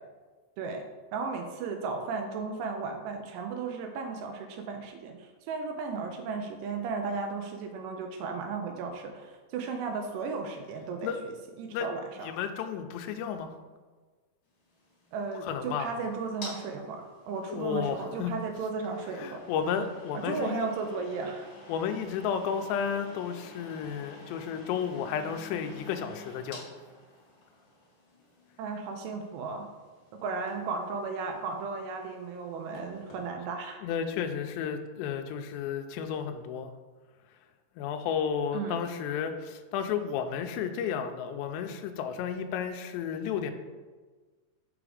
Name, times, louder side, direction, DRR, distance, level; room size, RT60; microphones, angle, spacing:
voice 1, 1.1-12.3 15.1-19.5 20.1-21.5 28.6-29.7 30.2-33.8 38.5-38.8, right 4 dB, 85° right, 4 dB, 2.6 m, -35 dB
voice 2, 12.2-13.5 15.4-15.9 17.5-18.3 19.2-20.7 21.7-26.7 33.8-36.7 37.8-43.5, left 7 dB, 85° left, 7 dB, 2.7 m, -32 dB
sound 1, 14.6-33.3, left 1 dB, 40° left, 2.0 m, -51 dB
6.9 x 4.9 x 4.9 m, 1.4 s
omnidirectional pair, 5.2 m